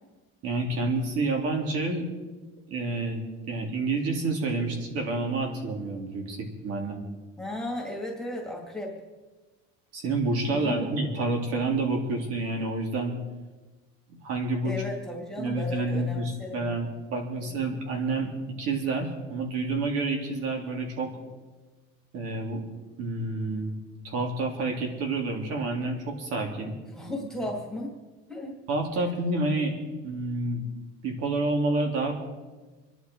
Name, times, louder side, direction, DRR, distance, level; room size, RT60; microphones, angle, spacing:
voice 1, 0.4-2.1 2.7-7.0 9.9-13.1 14.1-14.7 15.4-18.3 18.6-21.1 22.1-22.6 23.0-23.8 24.0-26.7 27.1-27.2 28.7-29.8 30.0-30.6 31.0-32.2, right 2 dB, 55° right, 2 dB, 3.6 m, -29 dB
voice 2, 7.4-9.0 10.5-10.9 14.6-16.8 17.3-17.6 26.9-27.9 28.3-28.6, left 1 dB, ahead, -2 dB, 2.4 m, -35 dB
27.0 x 11.0 x 4.8 m, 1.3 s
cardioid pair, 170°, 29 cm